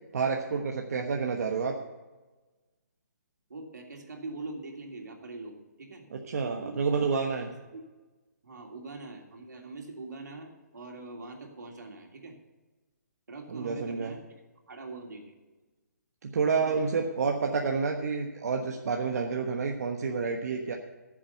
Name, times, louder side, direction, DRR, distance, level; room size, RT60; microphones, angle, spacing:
voice 1, 0.1-1.8 6.3-7.5 13.5-14.1 16.2-20.7, right 5 dB, 60° right, 2 dB, 1.2 m, -29 dB
voice 2, 3.5-6.1 6.6-6.8 7.5-7.8 8.4-12.4 13.3-14.3 14.7-15.3 16.6-17.0, right 3 dB, 85° right, 1 dB, 3.0 m, -43 dB
12.5 x 7.6 x 6.8 m, 1.2 s
hypercardioid pair, 155°, 9 cm